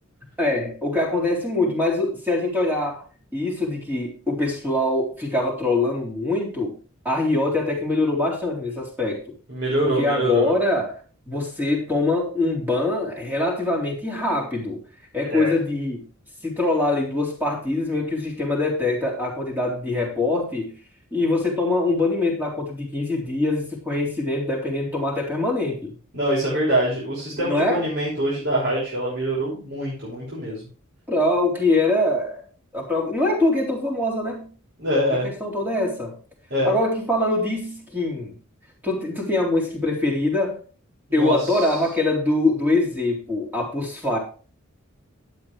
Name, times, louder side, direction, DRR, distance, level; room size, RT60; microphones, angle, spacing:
voice 1, 0.4-3.0 3.3-6.8 7.0-9.2 10.0-10.9 11.3-14.8 15.1-16.1 16.4-20.7 21.1-25.9 27.4-27.8 31.1-32.4 32.7-34.5 35.2-36.1 36.6-38.3 38.8-40.6 41.1-44.2, left 2 dB, 10° right, -2 dB, 3.8 m, -23 dB
voice 2, 9.5-10.5 15.3-15.5 26.1-30.6 34.8-35.3 36.5-36.7 41.1-41.8, right 1 dB, 55° right, -7 dB, 5.9 m, -24 dB
12.0 x 9.2 x 3.3 m, 0.38 s
head